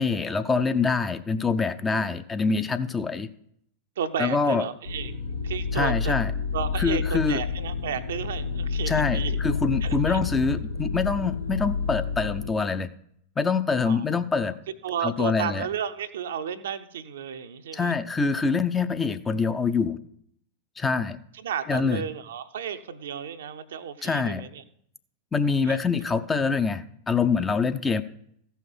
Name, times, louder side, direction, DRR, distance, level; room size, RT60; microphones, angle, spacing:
voice 1, 0.0-3.3 4.2-4.7 5.7-6.3 6.8-7.4 8.9-12.9 13.4-14.6 15.0-15.7 17.7-20.0 20.8-21.2 21.7-22.0 24.0-24.4 25.3-28.0, left 4 dB, 15° left, 9 dB, 0.6 m, -25 dB
voice 2, 4.0-5.1 5.4-6.1 6.5-9.4 9.8-10.2 13.8-14.0 14.8-17.9 21.3-24.6 25.6-25.8, right 8 dB, 60° right, 9 dB, 0.7 m, -33 dB
sound 1, 4.8-12.5, left 5 dB, 80° left, 1.2 m, -29 dB
15.0 x 5.7 x 6.3 m, 0.69 s
figure-of-eight pair, 90°, 0 cm